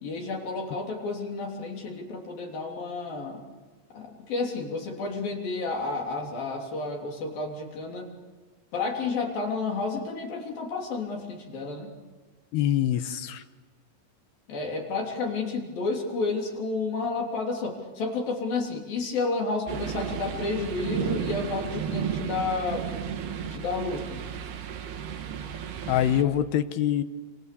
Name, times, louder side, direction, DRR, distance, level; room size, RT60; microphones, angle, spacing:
voice 1, 0.0-3.4 3.9-8.1 8.7-11.9 14.5-22.9 23.5-24.2, left 3 dB, 55° left, 0 dB, 4.9 m, -31 dB
voice 2, 12.5-13.4 25.9-27.0, left 11 dB, 75° left, 10 dB, 2.9 m, -24 dB
sound 1, 19.7-26.2, right 8 dB, 70° right, 3.7 m, -33 dB
29.5 x 27.5 x 6.9 m, 1.3 s
omnidirectional pair, 5.0 m